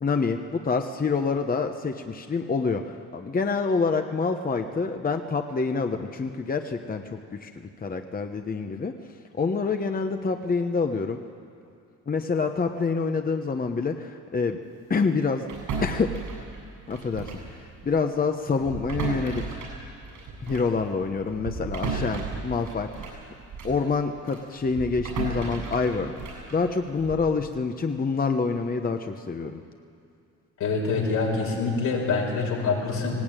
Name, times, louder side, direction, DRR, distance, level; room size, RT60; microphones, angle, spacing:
voice 1, 0.0-7.5 7.8-8.9 9.4-11.2 12.1-14.6 14.9-15.5 15.8-16.1 16.9-19.4 20.4-23.2 23.6-26.1 26.5-29.6, left 4 dB, 30° left, 6 dB, 1.1 m, -27 dB
sound 1, 15.5-17.5 17.8-18.0 18.6-23.8 24.3-27.3, right 4 dB, 80° right, 7.5 m, -35 dB
voice 2, 30.6-33.2, left 4 dB, 85° left, -1 dB, 5.3 m, -25 dB
19.0 x 17.5 x 9.1 m, 2.4 s
cardioid pair, 90°, 30 cm